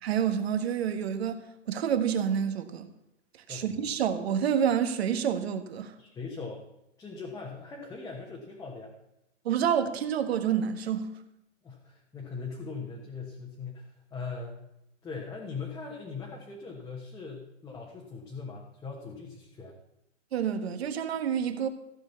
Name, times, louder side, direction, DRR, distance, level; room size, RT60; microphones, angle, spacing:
voice 1, 0.0-1.4 1.7-2.9 3.5-5.9 9.4-11.1 20.3-21.7, right 8 dB, 55° right, 1.6 m, -28 dB
voice 2, 3.5-3.8 6.0-6.6 7.0-8.9 11.6-14.6 15.0-19.7, left 4 dB, 10° left, 1.4 m, -40 dB
15.0 x 6.6 x 7.0 m
hypercardioid pair, 150°, 38 cm